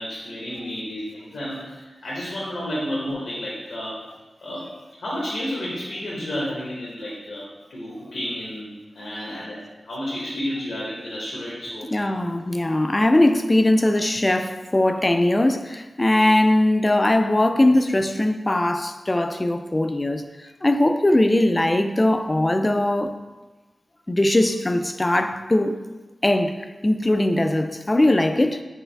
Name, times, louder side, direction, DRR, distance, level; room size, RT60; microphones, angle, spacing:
voice 1, 0.0-4.0 4.4-4.7 5.0-12.1, equal, 80° left, 1.0 m, -31 dB
voice 2, 11.9-20.2 20.6-23.1 24.1-25.8 26.2-28.6, left 1 dB, 30° left, 0.3 m, -20 dB
4.5 x 3.3 x 3.4 m
cardioid pair, 50°, 0 cm